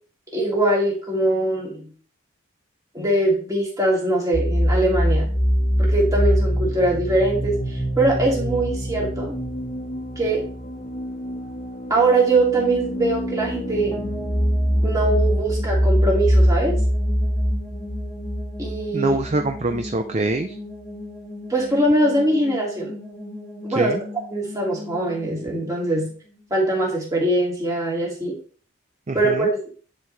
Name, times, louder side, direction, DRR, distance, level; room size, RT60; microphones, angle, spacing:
voice 1, 0.3-1.9 2.9-5.3 5.8-9.3 10.2-10.4 11.9-13.9 14.8-16.7 18.6-19.2 21.5-22.9 23.6-23.9 24.3-26.1 26.5-28.4 29.1-29.5, right 2 dB, 15° right, -3 dB, 2.4 m, -22 dB
sound 1, 4.3-19.9, equal, 40° left, 1.6 m, -23 dB
sound 2, 13.9-26.8, left 1 dB, ahead, 1.9 m, -38 dB
voice 2, 18.9-20.6 23.8-24.0 29.1-29.5, right 2 dB, 30° right, 6 dB, 0.5 m, -24 dB
10.5 x 4.7 x 3.3 m, 0.42 s
head